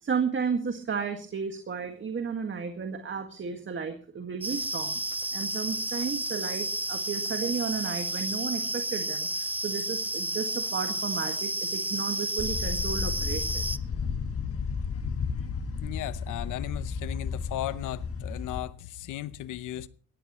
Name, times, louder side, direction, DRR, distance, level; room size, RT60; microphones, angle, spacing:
voice 1, 0.0-5.0 5.3-13.7, right 6 dB, 40° right, 1.9 m, -33 dB
sound 1, 4.4-13.8, right 1 dB, 5° right, 0.6 m, -31 dB
sound 2, 12.4-18.6, left 5 dB, 50° left, 1.6 m, -33 dB
voice 2, 15.8-19.9, left 14 dB, 85° left, 0.8 m, -36 dB
19.5 x 15.5 x 3.1 m
cardioid pair, 90°, 30 cm